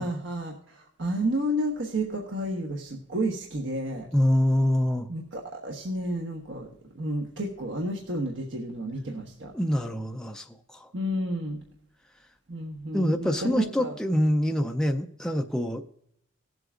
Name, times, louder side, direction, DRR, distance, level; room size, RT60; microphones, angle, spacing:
voice 1, 0.0-4.1 5.1-6.7 6.9-9.5 10.9-11.6 12.5-14.0, right 1 dB, 70° right, 1.3 m, -31 dB
voice 2, 4.1-5.1 9.5-10.9 12.9-15.8, equal, 5° left, 0.4 m, -25 dB
18.5 x 7.8 x 2.5 m
head